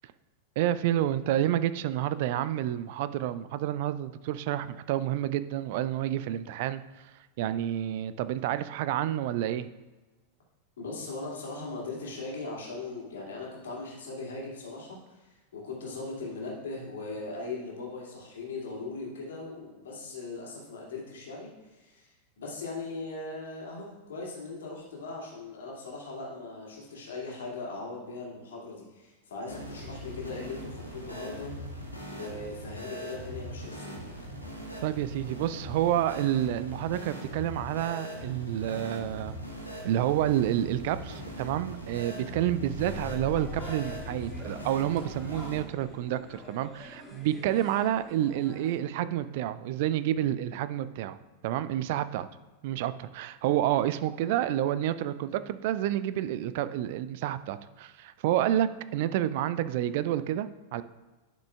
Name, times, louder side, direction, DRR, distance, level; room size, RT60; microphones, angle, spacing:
voice 1, 0.6-6.8 7.4-9.7 34.8-39.4 39.8-51.2 51.4-52.3 52.6-60.8, right 12 dB, 50° right, 14 dB, 0.3 m, -29 dB
voice 2, 10.8-22.1 22.4-31.7 32.1-34.0, left 3 dB, 60° left, -3 dB, 2.4 m, -39 dB
sound 1, 29.5-45.6, equal, 90° right, 1.4 m, -41 dB
Squeak, 40.6-46.9 47.7-47.8, left 2 dB, 40° left, 2.0 m, -45 dB
sound 2, 43.3-48.8, left 1 dB, 10° left, 1.8 m, -48 dB
11.0 x 6.1 x 2.3 m, 1.2 s
figure-of-eight pair, 90°, 0 cm